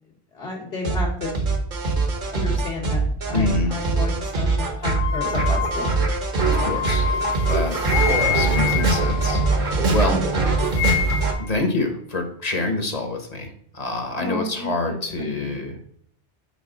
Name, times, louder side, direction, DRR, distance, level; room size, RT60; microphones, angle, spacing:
voice 1, 0.3-1.4 2.3-6.1 10.0-10.4 14.2-15.6, left 2 dB, 80° left, -8 dB, 1.9 m, -32 dB
sound 1, 0.8-11.3, right 3 dB, 55° right, 1.1 m, -22 dB
voice 2, 3.3-3.7 6.4-7.1 7.5-7.8 8.1-10.2 11.4-15.8, left 2 dB, 40° left, 4 dB, 1.0 m, -27 dB
sound 2, 4.8-10.1 10.4-11.5, left 10 dB, 65° left, 0.7 m, -28 dB
5.2 x 4.7 x 3.8 m, 0.65 s
omnidirectional pair, 1.0 m